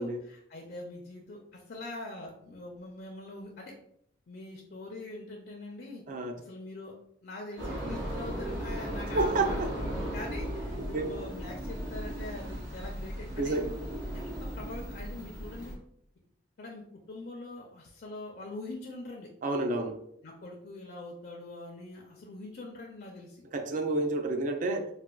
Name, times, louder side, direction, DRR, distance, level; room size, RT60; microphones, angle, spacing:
voice 1, 0.0-3.7 4.3-6.0 6.4-6.9 7.2-13.6 14.1-15.8 16.6-19.3 20.2-23.4, left 2 dB, 50° left, 0 dB, 0.4 m, -43 dB
voice 2, 6.1-6.4 9.1-9.7 10.8-11.1 13.4-13.7 19.4-20.0 23.5-24.9, right 2 dB, 40° right, 5 dB, 0.3 m, -30 dB
sound 1, 7.6-15.7, equal, 70° right, 0.9 m, -36 dB
4.1 x 2.2 x 2.2 m, 0.69 s
head